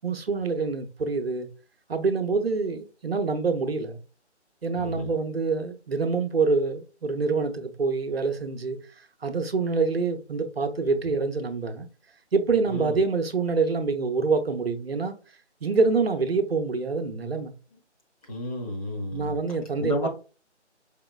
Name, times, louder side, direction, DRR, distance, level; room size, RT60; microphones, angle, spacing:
voice 1, 0.0-1.5 1.9-4.0 4.6-8.8 9.2-11.9 12.3-15.1 15.6-17.5 19.1-20.1, right 4 dB, 60° right, 0.7 m, -26 dB
voice 2, 4.7-5.1 12.7-13.0 18.3-19.4 19.8-20.1, left 1 dB, 30° left, 1.1 m, -31 dB
4.9 x 2.9 x 2.3 m
figure-of-eight pair, 150°, 35 cm